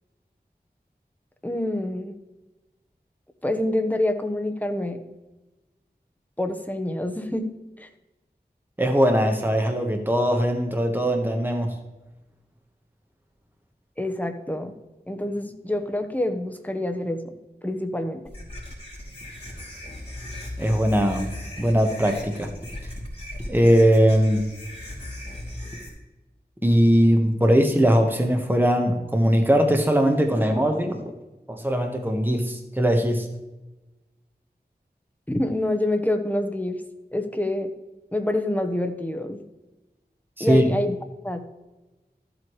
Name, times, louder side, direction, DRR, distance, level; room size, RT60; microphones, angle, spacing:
voice 1, 1.4-2.2 3.4-5.0 6.4-7.5 7.8-7.9 14.0-14.7 15.1-17.4 17.6-18.2 35.3-36.8 37.1-37.7 38.1-39.5 40.4-41.0 41.2-41.4, left 1 dB, 10° left, 5 dB, 1.1 m, -26 dB
voice 2, 8.8-11.7 20.6-21.3 21.6-22.5 23.5-24.4 26.6-31.0 31.5-33.3 40.4-40.6, equal, 10° right, 3 dB, 1.3 m, -20 dB
sound 1, 18.2-25.9, left 1 dB, 35° left, 2.9 m, -37 dB
13.5 x 7.9 x 3.2 m, 1.1 s
wide cardioid pair, 45°, 17 cm